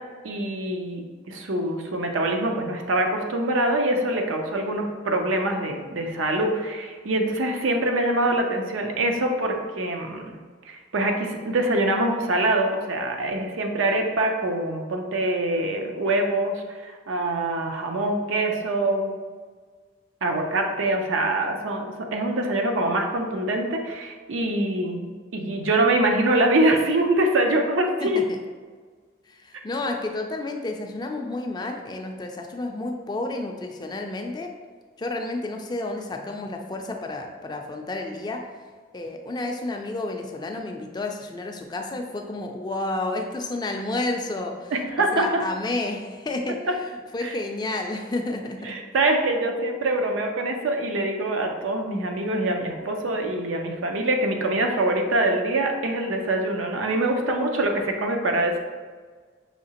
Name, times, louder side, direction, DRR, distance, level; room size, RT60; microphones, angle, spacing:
voice 1, 0.2-10.4 10.7-19.1 20.2-28.2 44.7-45.3 47.2-47.3 48.6-58.6, right 1 dB, 90° right, 3 dB, 0.6 m, -24 dB
voice 2, 28.0-28.4 29.3-34.5 35.0-38.4 38.9-44.7 45.1-48.8, left 2 dB, 20° left, 3 dB, 0.3 m, -31 dB
5.7 x 2.8 x 2.9 m, 1.5 s
head